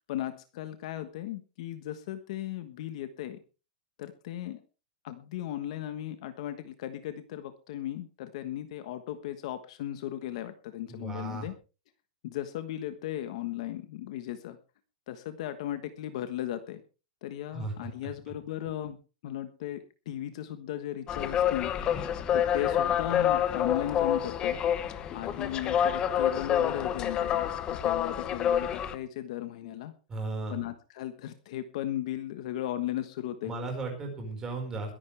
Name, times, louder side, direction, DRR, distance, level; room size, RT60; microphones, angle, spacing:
voice 1, 0.1-3.4 4.0-4.6 5.0-11.5 12.2-14.6 15.1-16.8 17.2-19.0 19.2-21.7 22.3-24.6 25.1-29.9 30.5-33.5, left 12 dB, 45° left, 10 dB, 1.3 m, -36 dB
voice 2, 10.9-11.5 17.5-17.7 30.1-30.6 33.4-34.9, right 3 dB, 10° right, 2 dB, 5.0 m, -35 dB
sound 1, 21.1-29.0, left 9 dB, 20° left, 1.0 m, -28 dB
22.0 x 11.0 x 3.4 m, 0.33 s
supercardioid pair, 175°, 5 cm